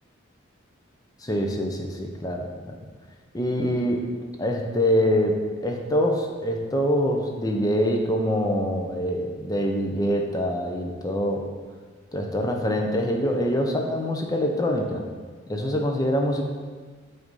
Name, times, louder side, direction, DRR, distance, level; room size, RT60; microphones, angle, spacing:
voice 1, 1.2-2.7 3.3-4.0 4.4-11.5 12.1-15.1 15.5-16.4, equal, 20° left, 2 dB, 0.5 m, -25 dB
7.6 x 2.7 x 5.2 m, 1.5 s
head